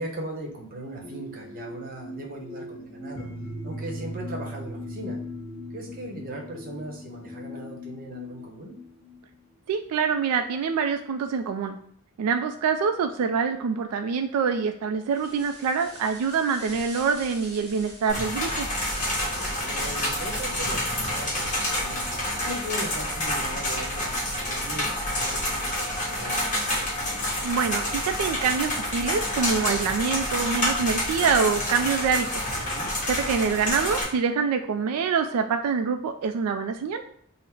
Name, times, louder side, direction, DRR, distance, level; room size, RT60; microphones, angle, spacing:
voice 1, 0.0-3.3 3.6-5.2 5.7-8.7 19.5-20.9 21.1-22.1 22.4-26.4 32.7-32.9, right 1 dB, 40° right, 0 dB, 0.8 m, -38 dB
sound 1, 1.0-9.2, left 1 dB, 55° left, 1.6 m, -38 dB
voice 2, 9.7-11.8 12.2-18.7 27.4-32.4 33.1-37.0, right 6 dB, 85° right, 9 dB, 0.3 m, -25 dB
sound 2, 15.1-22.0, equal, 10° left, 1.4 m, -44 dB
sound 3, 18.1-34.0, left 1 dB, 35° left, 1.2 m, -28 dB
3.8 x 2.0 x 4.3 m, 0.64 s
head